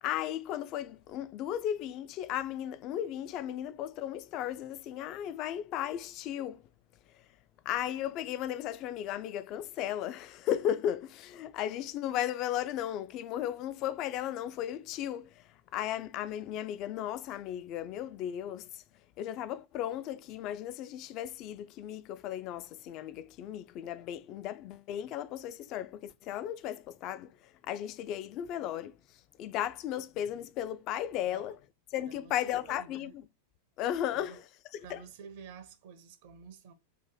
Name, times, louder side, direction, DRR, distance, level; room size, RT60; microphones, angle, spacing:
voice 1, 0.0-6.6 7.1-7.3 7.6-18.8 19.2-31.6 31.9-33.1 33.8-34.4 34.7-35.0, left 11 dB, 40° left, 0.3 m, -35 dB
voice 2, 31.2-31.6 32.1-33.1 34.1-34.4 34.8-36.7, right 6 dB, 50° right, 0.6 m, -50 dB
2.8 x 2.6 x 3.6 m
figure-of-eight pair, 90°, 0 cm